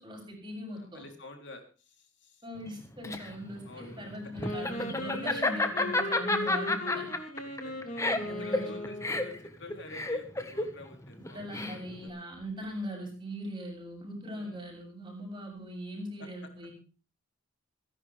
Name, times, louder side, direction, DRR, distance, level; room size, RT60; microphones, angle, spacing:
voice 1, 0.0-1.1 2.4-7.1 8.1-8.7 11.3-16.7, equal, 20° right, 0 dB, 7.2 m, -40 dB
voice 2, 0.7-2.4 3.7-4.1 7.4-7.9 8.3-11.5 11.9-12.2 14.2-14.6 16.2-16.3, left 2 dB, 60° left, 4 dB, 3.4 m, -49 dB
Laughter, 2.7-12.1, left 2 dB, 15° left, 1.5 m, -31 dB
Wind instrument woodwind instrument, 4.4-9.4, left 1 dB, 35° left, 3.2 m, -38 dB
27.0 x 11.0 x 3.5 m, 0.37 s
head